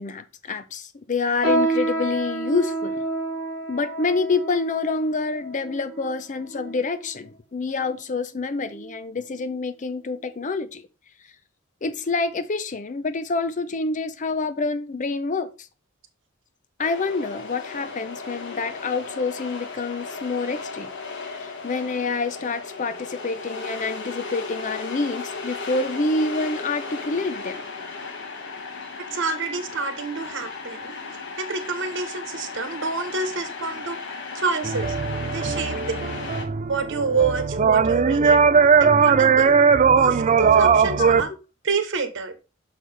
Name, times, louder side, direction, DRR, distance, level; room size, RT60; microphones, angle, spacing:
voice 1, 0.0-3.0 3.7-10.8 11.8-15.5 16.8-20.9 21.3-27.6 38.1-38.2 39.8-39.9 41.0-41.4, left 3 dB, 35° left, 0.5 m, -27 dB
sound 1, 1.4-7.1 7.8-7.9 8.6-8.9 9.3-9.5 10.2-10.3, right 2 dB, 80° left, 1.7 m, -29 dB
sound 2, 16.8-36.5, left 4 dB, 60° left, 1.2 m, -35 dB
voice 2, 29.0-30.9 31.4-34.0 34.3-34.9 35.2-36.1 36.7-38.4 38.8-39.5 40.0-41.3 41.6-42.3, right 4 dB, 60° right, 1.2 m, -27 dB
sound 3, 34.6-41.2, right 6 dB, 35° right, 0.4 m, -19 dB
6.4 x 5.9 x 3.3 m
head